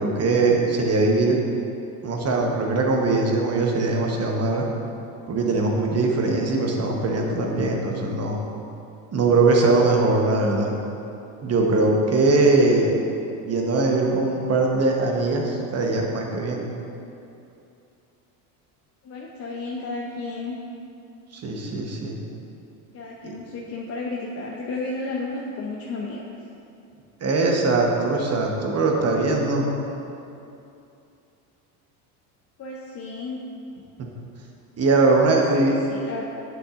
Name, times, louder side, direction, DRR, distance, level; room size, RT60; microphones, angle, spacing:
voice 1, 0.0-1.4 2.0-4.7 5.3-8.4 9.1-10.7 11.4-12.9 13.4-16.6 21.3-22.2 23.2-23.3 27.2-29.7 34.8-35.8, right 3 dB, 35° right, 0 dB, 1.0 m, -21 dB
voice 2, 19.0-20.6 22.9-26.2 32.6-33.4 35.3-36.2, left 3 dB, 30° left, -2 dB, 0.6 m, -33 dB
7.9 x 6.2 x 2.5 m, 2.7 s
supercardioid pair, 90°, 45 cm